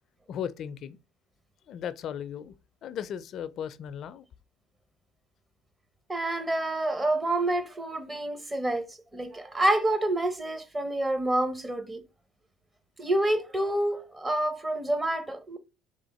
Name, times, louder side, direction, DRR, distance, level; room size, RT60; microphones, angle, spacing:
voice 1, 0.3-1.0 1.7-2.5 2.8-4.3, left 9 dB, 55° left, 0.4 m, -36 dB
voice 2, 6.1-12.0 13.0-15.6, right 1 dB, 15° right, 0.9 m, -28 dB
3.6 x 3.5 x 4.1 m
supercardioid pair, 90°, 0 cm